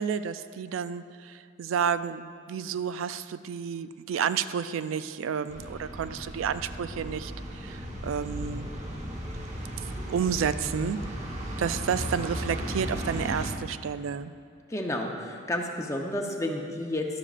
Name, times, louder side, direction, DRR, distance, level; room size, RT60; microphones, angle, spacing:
voice 1, 0.0-8.7 9.8-11.3 11.6-14.3, right 7 dB, 85° right, 13 dB, 0.3 m, -31 dB
sound 1, 5.5-13.5, equal, 35° right, 1.1 m, -36 dB
voice 2, 14.7-17.0, left 1 dB, 15° left, 2 dB, 0.7 m, -31 dB
12.5 x 11.5 x 2.5 m, 2.3 s
head